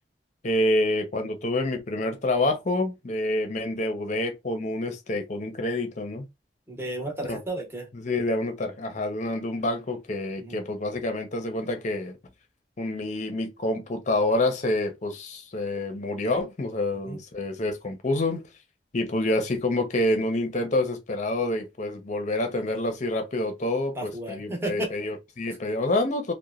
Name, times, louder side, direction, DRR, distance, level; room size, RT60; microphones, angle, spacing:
voice 1, 0.4-6.3 7.3-7.4 8.0-12.2 12.8-18.4 18.9-26.3, left 1 dB, 45° left, 0.6 m, -27 dB
voice 2, 6.7-7.9 10.4-10.6 17.0-17.2 23.9-24.9, right 1 dB, 15° right, 0.9 m, -33 dB
2.9 x 2.1 x 2.4 m
head